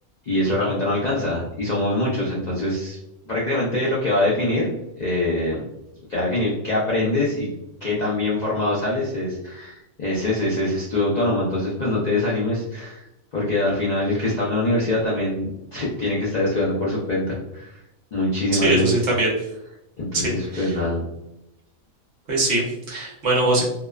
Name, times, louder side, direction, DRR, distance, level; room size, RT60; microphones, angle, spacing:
voice 1, 0.3-3.0 3.3-4.7 5.0-5.6 6.1-7.5 7.8-13.0 13.3-17.7 18.1-19.0 20.0-21.0, left 1 dB, 70° left, -5 dB, 0.4 m, -23 dB
voice 2, 18.6-19.3 20.1-20.8 22.3-23.6, right 2 dB, 55° right, -4 dB, 1.0 m, -22 dB
2.7 x 2.1 x 2.3 m, 0.88 s
omnidirectional pair, 1.5 m